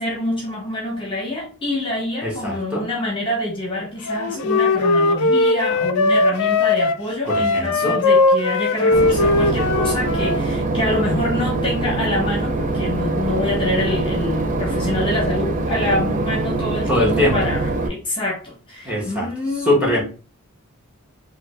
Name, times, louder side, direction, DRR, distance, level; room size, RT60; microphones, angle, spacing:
voice 1, 0.0-20.0, left 1 dB, 25° left, 0.9 m, -26 dB
voice 2, 2.2-2.9 7.3-8.0 16.9-17.4 18.8-19.3 19.6-20.0, left 1 dB, 5° right, 1.1 m, -21 dB
Wind instrument woodwind instrument, 4.1-10.4, left 3 dB, 90° left, 0.4 m, -19 dB
Boat Water vehicle / Engine, 8.9-17.9, right 2 dB, 35° right, 0.4 m, -23 dB
3.3 x 2.3 x 3.2 m
head